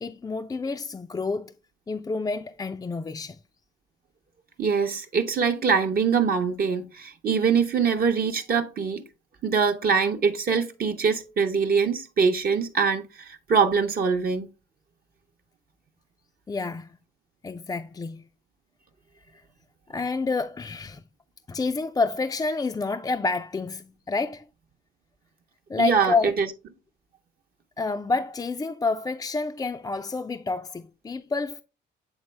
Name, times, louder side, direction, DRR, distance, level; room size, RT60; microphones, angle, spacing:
voice 1, 0.0-1.5 1.9-3.4 16.5-17.0 17.4-18.2 19.9-21.0 21.5-24.5 25.7-26.3 27.8-31.6, left 4 dB, 20° left, 0.4 m, -28 dB
voice 2, 4.6-9.0 9.4-14.5 25.8-26.5, right 5 dB, 50° right, 0.8 m, -23 dB
8.0 x 3.7 x 3.3 m
cardioid pair, 90°, 20 cm